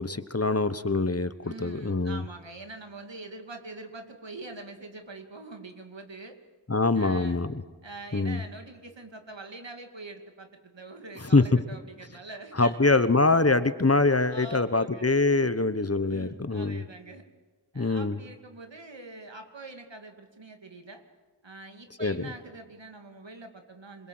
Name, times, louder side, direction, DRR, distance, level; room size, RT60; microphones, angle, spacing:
voice 1, 0.0-2.2 6.7-7.6 8.1-8.4 11.3-11.4 12.5-16.8 17.7-18.2 22.0-22.2, left 3 dB, 35° left, 13 dB, 1.1 m, -24 dB
voice 2, 1.4-6.4 6.9-7.4 7.8-13.1 14.3-15.1 16.0-17.3 17.7-21.0 21.4-24.1, right 2 dB, 75° right, 5 dB, 2.7 m, -44 dB
26.5 x 21.5 x 7.9 m, 1.3 s
wide cardioid pair, 45°, 45 cm